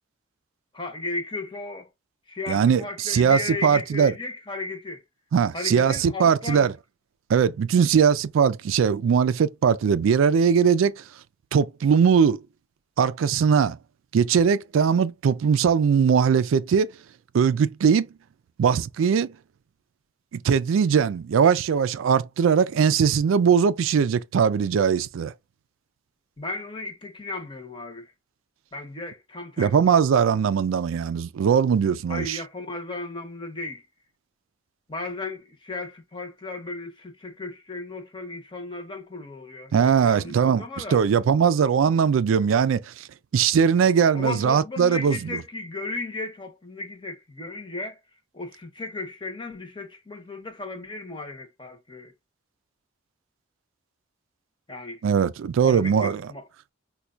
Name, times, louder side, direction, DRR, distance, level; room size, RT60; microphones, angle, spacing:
voice 1, 0.7-1.9 2.3-5.0 5.5-6.7 26.4-28.1 28.7-29.7 32.1-33.9 34.9-41.0 44.1-48.0 48.3-52.1 54.7-55.0 55.6-56.4, left 2 dB, 25° left, 0.8 m, -35 dB
voice 2, 2.5-4.1 5.3-6.7 7.3-11.0 11.5-12.4 13.0-13.8 14.1-16.9 17.3-18.1 18.6-19.3 20.3-25.3 29.6-32.4 39.7-40.7 40.9-43.1 43.3-45.4 55.0-56.2, right 7 dB, 85° right, 0.3 m, -20 dB
4.3 x 2.3 x 2.4 m
head